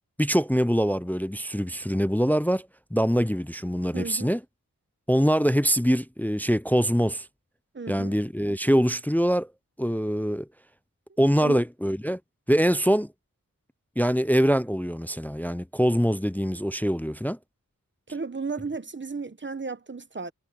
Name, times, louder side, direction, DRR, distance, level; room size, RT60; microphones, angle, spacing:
voice 1, 0.2-4.4 5.1-7.3 7.9-9.5 9.8-10.5 11.2-12.2 12.5-13.1 14.0-17.4, equal, 5° left, 0.4 m, -24 dB
voice 2, 3.9-4.3 7.7-8.2 11.4-11.6 18.1-20.3, right 4 dB, 35° right, 1.0 m, -34 dB
wide cardioid pair, 65°, 34 cm